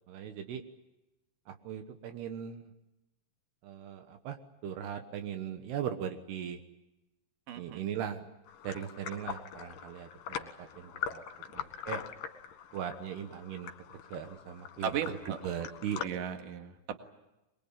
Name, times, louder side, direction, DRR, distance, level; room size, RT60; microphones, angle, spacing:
voice 1, 0.1-0.6 1.5-2.6 3.6-4.4 4.6-6.6 7.6-8.2 8.6-10.5 10.8-11.2 11.5-12.0 12.7-13.7 14.1-14.9 15.4-16.0, right 9 dB, 80° right, 7 dB, 3.3 m, -39 dB
voice 2, 7.5-7.8 14.8-15.4 16.0-17.0, right 8 dB, 60° right, 6 dB, 3.2 m, -36 dB
sound 1, 8.5-16.1, left 8 dB, 65° left, 3.0 m, -42 dB
23.5 x 22.5 x 9.0 m, 0.96 s
omnidirectional pair, 4.7 m